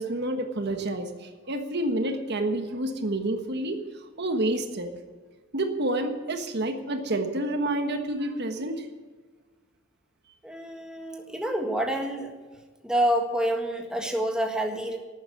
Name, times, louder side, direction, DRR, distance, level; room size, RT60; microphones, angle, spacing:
voice 1, 0.0-3.8 4.2-4.9 5.5-9.0, right 1 dB, 55° right, 6 dB, 1.4 m, -29 dB
voice 2, 10.4-12.3 12.8-15.0, right 1 dB, 5° right, 2 dB, 1.7 m, -27 dB
12.5 x 9.1 x 9.7 m, 1.4 s
head